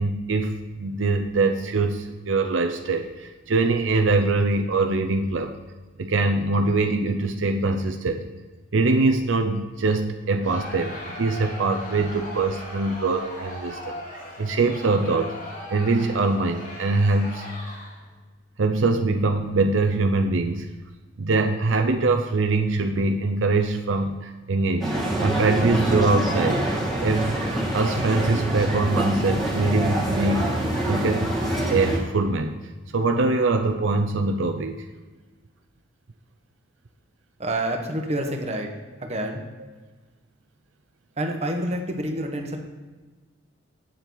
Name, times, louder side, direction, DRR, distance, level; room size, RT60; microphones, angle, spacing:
voice 1, 0.0-5.5 6.0-8.2 8.7-14.0 14.4-15.3 15.7-17.5 18.6-20.7 21.2-24.9 25.2-26.7 27.0-27.4 27.7-30.5 30.9-31.3 31.7-32.6 32.9-34.9, right 3 dB, 75° right, 5 dB, 0.6 m, -23 dB
Crowd, 10.4-18.1, left 1 dB, 45° left, 2.0 m, -38 dB
sound 1, 24.8-32.0, right 1 dB, ahead, 1.8 m, -25 dB
voice 2, 37.4-38.7 39.0-39.4 41.2-42.6, right 1 dB, 35° right, 3 dB, 1.1 m, -28 dB
8.7 x 7.1 x 3.9 m, 1.3 s
head